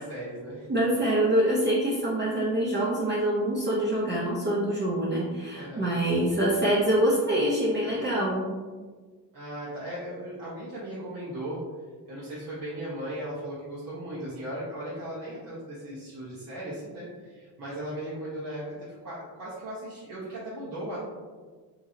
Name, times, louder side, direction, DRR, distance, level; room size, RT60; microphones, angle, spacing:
voice 1, 0.0-0.9 5.5-5.9 9.3-11.6 12.1-21.1, right 1 dB, 50° right, -9 dB, 1.1 m, -37 dB
voice 2, 0.7-8.5, right 1 dB, 25° right, -6 dB, 0.6 m, -25 dB
2.9 x 2.7 x 2.6 m, 1.4 s
supercardioid pair, 70°, 44 cm